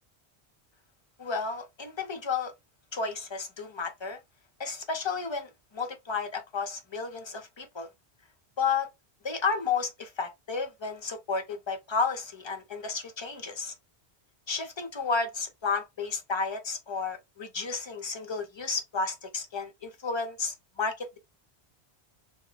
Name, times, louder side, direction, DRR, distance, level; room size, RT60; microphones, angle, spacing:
voice 1, 1.2-2.5 2.9-4.2 4.6-7.9 8.6-8.9 9.2-13.7 14.5-21.2, left 4 dB, 35° left, 0.6 m, -32 dB
2.2 x 2.1 x 3.8 m
omnidirectional pair, 1.1 m